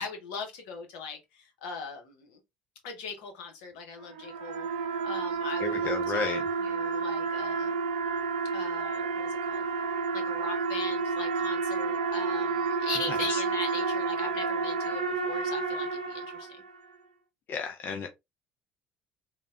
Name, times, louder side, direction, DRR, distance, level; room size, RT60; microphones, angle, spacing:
voice 1, 0.0-2.4 2.8-4.7 5.0-7.8 8.5-9.6 10.1-16.6, left 5 dB, 75° left, 0.9 m, -40 dB
sound 1, 4.0-16.8, right 4 dB, 85° right, 0.4 m, -30 dB
voice 2, 5.6-6.4 13.3-13.4 17.5-18.1, left 5 dB, 45° left, 0.5 m, -32 dB
3.3 x 2.2 x 2.4 m
hypercardioid pair, 60°, 5 cm